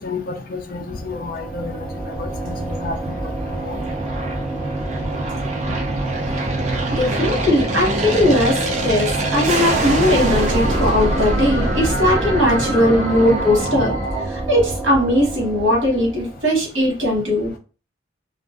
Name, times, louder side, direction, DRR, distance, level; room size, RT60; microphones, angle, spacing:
voice 1, 0.0-1.7 2.1-3.2 3.6-3.8, left 3 dB, 45° left, 0.4 m, -30 dB
Mystic Ambient (No vinyl), 0.7-16.6, right 2 dB, 15° left, 0.9 m, -29 dB
Aircraft, 1.7-14.4, right 2 dB, 35° right, 0.4 m, -25 dB
voice 2, 6.9-13.9 14.2-17.5, left 1 dB, 70° right, 1.1 m, -19 dB
sound 1, 7.1-14.2, equal, 60° left, 1.1 m, -28 dB
2.3 x 2.3 x 2.4 m
head